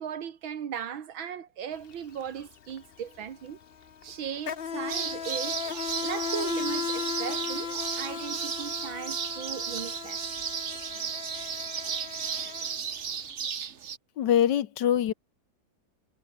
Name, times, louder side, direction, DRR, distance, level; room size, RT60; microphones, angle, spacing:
voice 1, 0.0-3.6 4.0-5.7 6.0-7.7 8.0-10.2, right 8 dB, 80° right, 2.4 m, -37 dB
Insect, 1.8-1.9 2.2-13.2, left 7 dB, 50° left, 0.7 m, -37 dB
sound 1, 4.9-14.0, right 7 dB, 45° right, 1.1 m, -34 dB
voice 2, 14.2-15.1, left 10 dB, 65° left, 1.5 m, -23 dB
omnidirectional pair, 2.1 m